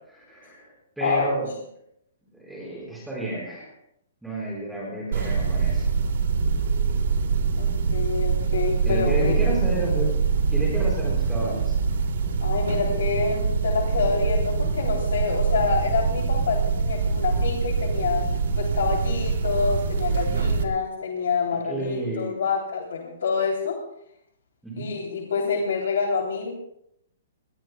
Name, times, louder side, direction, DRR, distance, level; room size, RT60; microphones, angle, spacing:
voice 1, 0.1-1.5 2.4-3.7 4.2-5.9 8.8-10.1 10.5-11.8 20.2-20.5 21.5-22.4 24.6-24.9, right 1 dB, ahead, -4 dB, 4.5 m, -31 dB
voice 2, 1.0-1.4 7.6-9.5 12.4-18.2 18.6-23.8 24.8-26.5, left 5 dB, 80° left, 0 dB, 3.3 m, -27 dB
sound 1, 5.1-20.6, right 5 dB, 65° right, 2.7 m, -24 dB
24.5 x 20.5 x 2.3 m, 0.75 s
hypercardioid pair, 170°, 0 cm